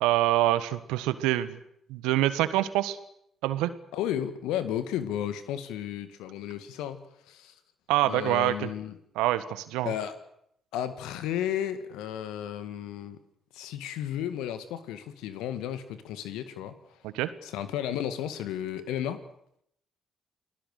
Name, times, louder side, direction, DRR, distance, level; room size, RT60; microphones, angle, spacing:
voice 1, 0.0-1.6 1.9-3.0 3.4-3.7 7.9-8.7 9.1-9.9 17.0-17.3, right 15 dB, 75° right, 13 dB, 1.4 m, -25 dB
voice 2, 3.9-7.5 8.0-9.0 9.8-10.2 10.7-13.2 13.5-16.7 17.4-19.2, left 10 dB, 75° left, 11 dB, 1.9 m, -33 dB
29.5 x 20.0 x 6.7 m, 0.73 s
hypercardioid pair, 45°, 0 cm